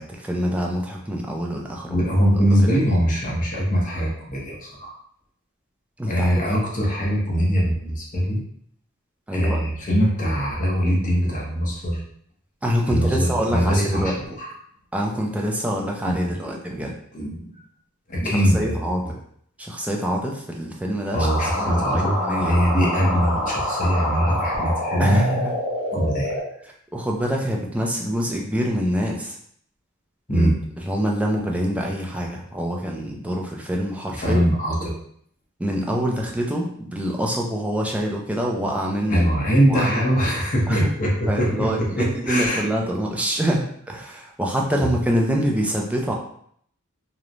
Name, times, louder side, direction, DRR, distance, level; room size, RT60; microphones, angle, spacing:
voice 1, 0.0-2.0 6.0-6.3 9.3-9.6 12.6-14.2 14.9-16.9 18.3-19.0 19.6-22.6 25.0-25.5 26.6-29.4 30.3-30.5 30.9-34.4 35.6-39.3 39.7-40.2 40.7-40.9 41.3-46.1, equal, 5° right, -1 dB, 0.3 m, -25 dB
voice 2, 1.9-4.9 6.1-8.4 9.3-12.0 12.9-14.1 14.4-14.5 16.0-16.6 17.1-17.6 18.1-19.1 21.1-25.2 25.9-26.3 30.3-30.5 34.2-34.9 39.1-42.6 44.8-44.9, equal, 40° left, -3 dB, 0.8 m, -22 dB
sound 1, 21.2-26.4, left 1 dB, 75° left, 1.2 m, -26 dB
3.0 x 2.0 x 2.5 m, 0.64 s
head